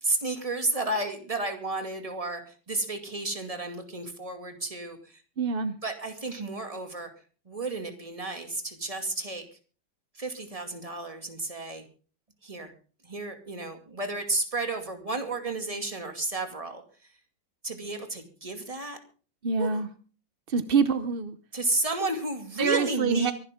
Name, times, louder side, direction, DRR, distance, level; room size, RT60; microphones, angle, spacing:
voice 1, 0.0-5.2 5.8-7.1 7.5-9.5 10.1-11.8 12.4-12.7 13.0-16.8 17.6-19.0 19.6-19.8 21.5-23.3, right 2 dB, 20° right, 5 dB, 2.4 m, -32 dB
voice 2, 5.4-5.8 19.4-19.9 20.5-21.4 22.6-23.3, right 5 dB, 50° right, 11 dB, 0.6 m, -26 dB
24.0 x 11.5 x 3.7 m, 0.39 s
omnidirectional pair, 2.1 m